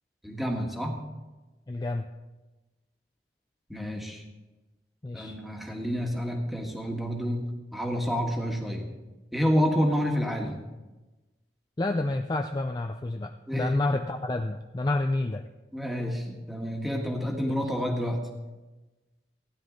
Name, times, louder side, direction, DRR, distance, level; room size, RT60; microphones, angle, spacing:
voice 1, 0.2-1.0 3.7-4.2 5.1-8.9 9.3-10.6 13.5-13.8 15.7-18.2, equal, ahead, 1 dB, 1.5 m, -29 dB
voice 2, 1.7-2.1 5.0-5.4 11.8-15.4 17.6-17.7, left 2 dB, 20° left, 5 dB, 0.4 m, -29 dB
15.5 x 10.5 x 3.8 m, 1.1 s
head